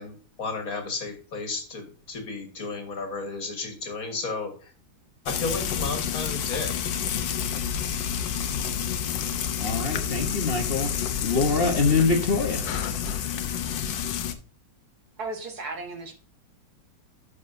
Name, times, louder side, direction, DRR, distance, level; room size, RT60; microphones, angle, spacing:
voice 1, 0.0-4.7 5.2-6.8, left 3 dB, 50° left, 5 dB, 2.1 m, -33 dB
Frying (food), 5.3-14.3, left 8 dB, 80° left, 1.5 m, -29 dB
voice 2, 9.6-10.9 11.2-12.6, left 4 dB, 35° left, 2 dB, 1.3 m, -24 dB
voice 3, 15.2-16.1, right 3 dB, 60° right, 4 dB, 1.9 m, -35 dB
10.5 x 6.6 x 2.7 m, 0.39 s
omnidirectional pair, 1.9 m